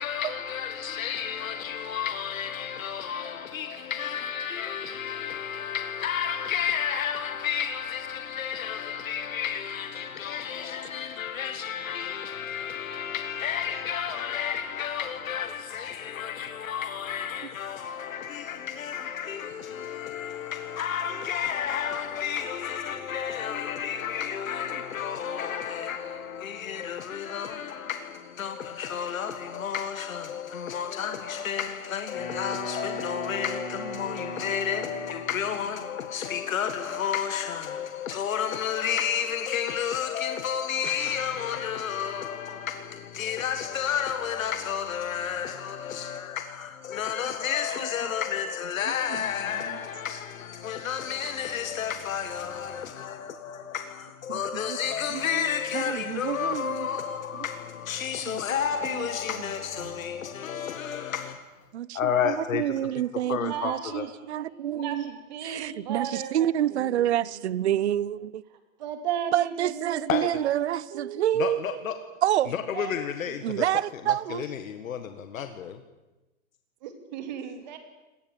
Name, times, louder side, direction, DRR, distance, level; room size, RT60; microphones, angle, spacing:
voice 1, 0.0-61.4 61.9-62.6 63.3-64.1 70.1-70.3 71.4-71.9 72.5-73.6 74.1-75.8, left 8 dB, 75° left, 1.9 m, -31 dB
Wind instrument woodwind instrument, 32.1-35.6, equal, 40° left, 5.7 m, -38 dB
voice 2, 55.1-55.5 55.7-56.9 58.3-58.4 59.0-59.1 59.8-59.9 61.7-65.0 65.4-68.4 69.3-71.8 72.2-72.5 73.4-74.5, right 12 dB, 55° right, 0.7 m, -28 dB
voice 3, 62.8-67.8 68.8-72.2 72.7-73.0 73.3-73.4 76.8-77.8, right 8 dB, 35° right, 2.8 m, -37 dB
25.5 x 19.0 x 7.3 m
hypercardioid pair, 180°, 41 cm